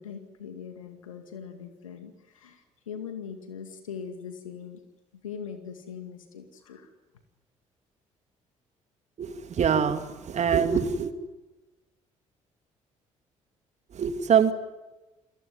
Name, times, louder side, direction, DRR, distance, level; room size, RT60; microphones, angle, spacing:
voice 1, 0.0-2.6 2.9-4.8 5.2-6.9, left 7 dB, 80° left, 2.2 m, -41 dB
voice 2, 9.2-11.1 13.9-14.5, right 7 dB, 40° right, 2.7 m, -24 dB
29.5 x 21.0 x 9.7 m
figure-of-eight pair, 45°, 17 cm